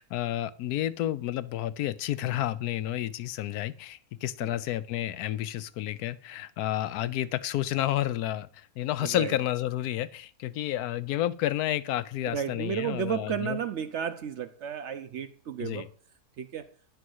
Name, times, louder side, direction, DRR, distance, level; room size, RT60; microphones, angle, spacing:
voice 1, 0.0-13.6 15.6-15.9, left 13 dB, 85° left, 1.1 m, -30 dB
voice 2, 9.0-9.4 12.3-15.9 16.4-16.7, right 8 dB, 65° right, 0.7 m, -33 dB
9.8 x 4.6 x 7.7 m
omnidirectional pair, 1.6 m